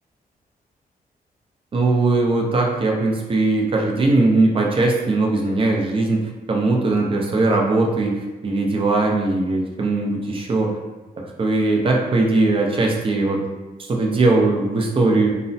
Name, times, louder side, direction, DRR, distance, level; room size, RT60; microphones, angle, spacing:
voice 1, 1.7-10.8 11.2-13.4 13.9-15.3, right 2 dB, 35° right, 0 dB, 0.4 m, -20 dB
3.1 x 2.0 x 2.6 m, 1.1 s
wide cardioid pair, 135°, 16 cm